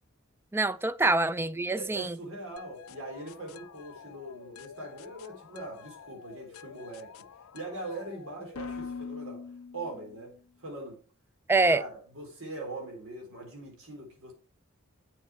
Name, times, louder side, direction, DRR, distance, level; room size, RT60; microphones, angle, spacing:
voice 1, 0.5-2.1 11.5-11.8, right 3 dB, 10° right, 0.3 m, -25 dB
voice 2, 1.7-7.3 7.5-9.4 9.7-11.0 11.7-14.3, right 2 dB, 90° right, 3.9 m, -41 dB
sound 1, 2.6-10.3, left 5 dB, 80° left, 0.5 m, -45 dB
8.1 x 7.1 x 4.6 m
head